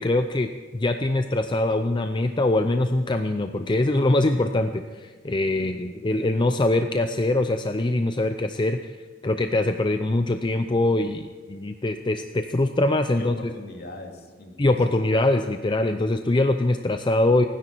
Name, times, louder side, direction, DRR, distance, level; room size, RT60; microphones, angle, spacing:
voice 1, 0.0-8.9 9.2-13.3 14.6-17.4, left 2 dB, 25° left, 7 dB, 0.5 m, -23 dB
voice 2, 5.6-6.1 13.2-14.9, left 2 dB, 55° left, 2 dB, 2.4 m, -41 dB
30.0 x 10.0 x 4.6 m, 1.4 s
head